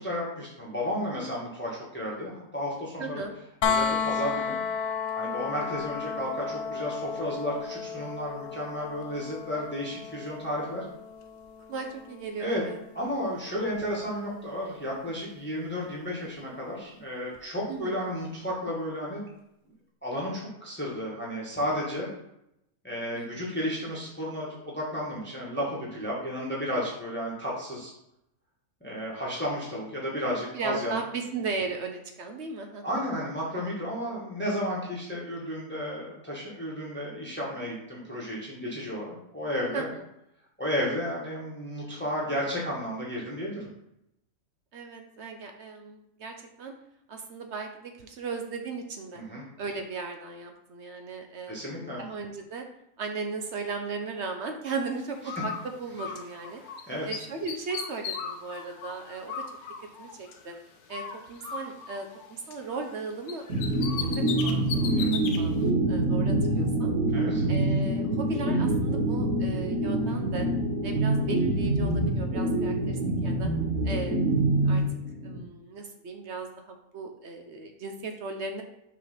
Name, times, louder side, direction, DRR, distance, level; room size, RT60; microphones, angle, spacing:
voice 1, 0.0-3.2 3.6-4.6 5.1-10.8 12.4-12.6 12.9-19.2 20.0-22.1 22.8-27.9 28.8-31.0 32.8-39.9 40.6-43.7 49.1-49.4 51.5-52.0 56.6-57.1 64.9-65.1 67.1-67.4, equal, 10° left, -5 dB, 1.3 m, -33 dB
voice 2, 3.0-3.3 11.7-12.8 17.7-18.0 23.1-23.5 30.5-32.8 39.7-40.0 44.7-46.7 47.1-49.2 49.6-52.6 53.0-56.6 57.0-59.3 60.0-60.5 60.9-61.0 61.3-63.5 63.9-66.9 67.5-70.5 70.8-73.5 73.8-74.8 75.2-78.6, right 4 dB, 60° right, 4 dB, 0.8 m, -37 dB
sound 1, 3.6-15.4 17.4-17.5, left 6 dB, 65° left, 0.6 m, -34 dB
Bird, 55.2-56.8 57.1-60.6 60.9-63.0 63.3-65.4, left 6 dB, 85° left, 1.2 m, -37 dB
sound 2, 63.5-75.4, right 1 dB, 75° right, 1.7 m, -26 dB
5.7 x 3.2 x 5.5 m, 0.81 s
omnidirectional pair, 1.5 m